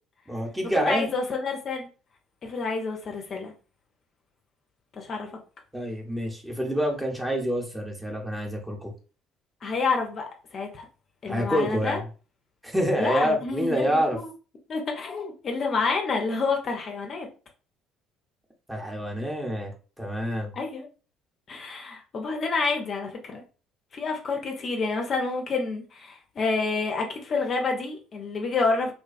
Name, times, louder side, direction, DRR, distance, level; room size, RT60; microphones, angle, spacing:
voice 1, 0.3-1.1 5.7-8.9 11.3-12.0 12.6-14.2 18.7-19.7 20.0-20.5, equal, 5° right, 0.8 m, -27 dB
voice 2, 0.9-1.9 2.4-3.5 5.0-5.3 9.6-10.8 11.2-12.0 13.0-14.3 14.7-17.3 20.5-20.9 21.5-23.4 23.9-28.9, left 4 dB, 45° left, 0.5 m, -28 dB
2.4 x 2.2 x 2.4 m
figure-of-eight pair, 50°, 0 cm